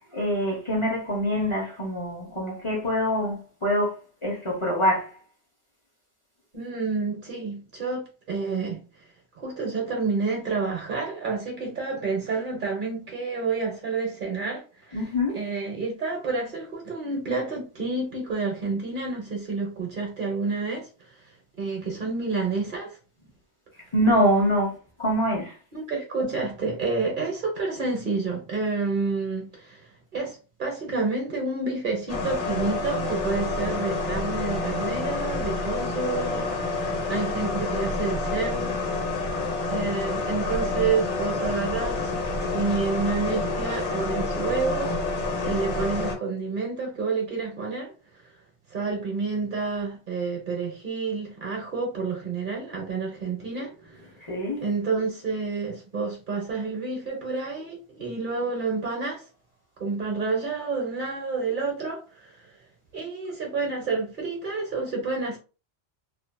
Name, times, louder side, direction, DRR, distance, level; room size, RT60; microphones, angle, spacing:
voice 1, 0.0-4.0 4.2-5.1 14.9-15.4 23.9-25.5 37.0-37.1 54.3-54.6, equal, 30° left, 0.8 m, -25 dB
voice 2, 6.5-8.8 9.4-15.0 15.3-21.1 21.6-23.0 25.7-38.8 39.7-47.9 48.7-54.0 54.6-59.2 59.8-62.5 62.9-65.4, right 4 dB, 50° right, 1.0 m, -29 dB
sound 1, 32.1-46.1, left 3 dB, 80° left, 1.1 m, -28 dB
2.7 x 2.6 x 2.2 m
omnidirectional pair, 1.2 m